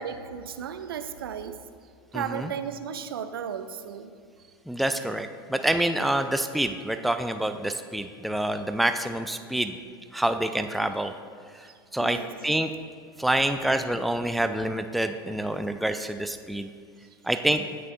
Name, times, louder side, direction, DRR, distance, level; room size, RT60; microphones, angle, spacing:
voice 1, 0.0-1.7 2.1-4.2 11.6-12.3, right 8 dB, 70° right, 10 dB, 0.6 m, -35 dB
voice 2, 2.1-2.5 4.7-9.8 10.1-11.1 11.9-12.2 12.4-12.7 13.2-16.7 17.2-17.7, right 1 dB, ahead, 8 dB, 0.4 m, -27 dB
17.0 x 6.6 x 2.6 m, 2.1 s
figure-of-eight pair, 80°, 13 cm